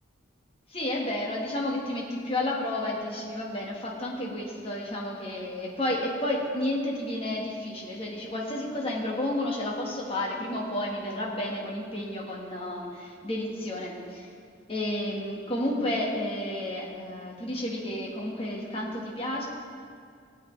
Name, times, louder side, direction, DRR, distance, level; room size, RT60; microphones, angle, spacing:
voice 1, 0.7-14.3 14.7-19.4, left 1 dB, 30° left, -3 dB, 1.5 m, -31 dB
16.5 x 8.7 x 3.2 m, 2.3 s
head